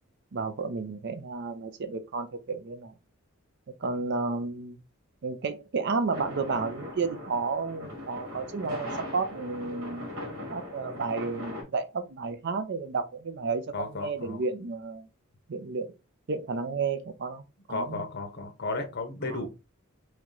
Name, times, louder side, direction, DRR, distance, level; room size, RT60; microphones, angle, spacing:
voice 1, 0.3-2.9 3.8-4.8 5.2-10.1 10.5-15.1 15.5-15.9 16.3-17.4 17.7-18.0 19.3-19.5, right 4 dB, 55° right, 0.5 m, -32 dB
sound 1, 6.1-11.6, left 1 dB, 85° right, 1.7 m, -39 dB
voice 2, 13.7-14.4 17.7-19.5, left 3 dB, 50° left, 1.0 m, -34 dB
3.1 x 3.0 x 3.7 m
head